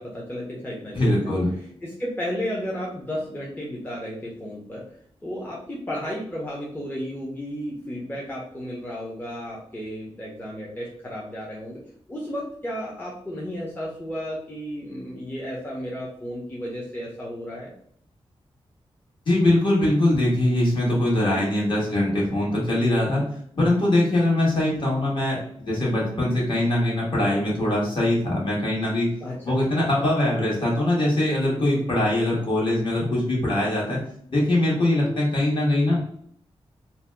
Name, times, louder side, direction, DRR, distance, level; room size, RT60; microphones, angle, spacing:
voice 1, 0.0-1.4 1.8-4.8 5.2-11.8 12.1-17.7 29.2-29.5, equal, 20° left, -5 dB, 0.6 m, -33 dB
voice 2, 0.9-1.5 19.2-23.2 23.5-29.1 29.4-34.0 34.3-36.0, left 1 dB, 50° left, -5 dB, 1.4 m, -22 dB
2.7 x 2.1 x 3.4 m, 0.64 s
wide cardioid pair, 105°, 11 cm